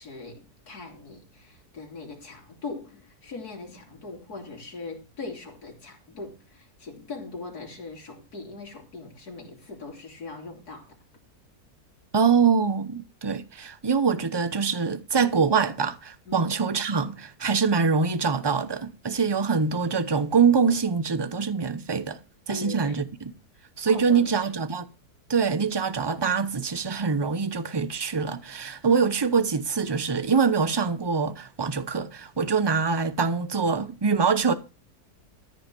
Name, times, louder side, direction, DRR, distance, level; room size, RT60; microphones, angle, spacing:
voice 1, 0.0-10.9 16.3-16.4 22.5-22.9 23.9-24.5 32.4-32.5, left 3 dB, 70° left, 3.6 m, -40 dB
voice 2, 12.1-22.2 22.5-23.3 23.8-24.9 25.3-34.5, right 5 dB, 25° right, 0.5 m, -24 dB
13.5 x 5.5 x 7.6 m
omnidirectional pair, 1.7 m